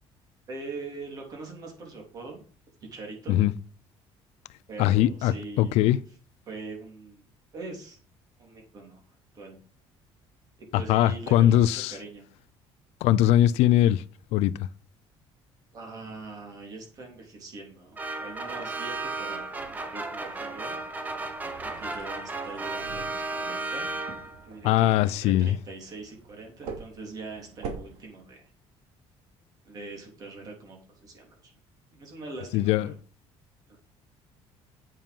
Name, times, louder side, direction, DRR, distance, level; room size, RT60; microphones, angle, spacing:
voice 1, 0.5-2.4 2.9-3.4 4.7-6.0 6.5-7.2 7.5-8.0 8.4-9.0 9.3-9.6 10.6-12.2 15.7-20.8 21.6-24.0 24.4-28.4 29.6-31.5 31.9-33.0 33.7-33.8, right 3 dB, 35° right, 3.6 m, -42 dB
voice 2, 4.8-6.0 10.7-11.9 13.0-14.0 14.3-14.5 24.6-25.6 32.5-32.9, left 12 dB, 85° left, 0.6 m, -21 dB
sound 1, 18.0-24.5, right 2 dB, 15° right, 1.0 m, -34 dB
sound 2, 18.2-28.0, right 5 dB, 75° right, 2.6 m, -46 dB
8.8 x 7.5 x 5.5 m
cardioid pair, 175°, 11 cm